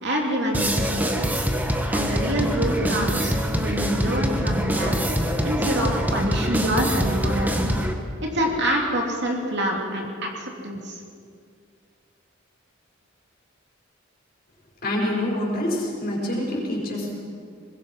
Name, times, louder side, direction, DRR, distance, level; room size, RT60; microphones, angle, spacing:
voice 1, 0.0-1.5 1.9-5.0 5.4-7.6 8.2-11.0, right 1 dB, 60° right, 0 dB, 3.0 m, -26 dB
sound 1, 0.5-7.9, equal, 10° right, 1.4 m, -24 dB
voice 2, 14.8-17.1, left 1 dB, 50° left, -3 dB, 6.1 m, -26 dB
22.0 x 21.0 x 5.6 m, 2.2 s
head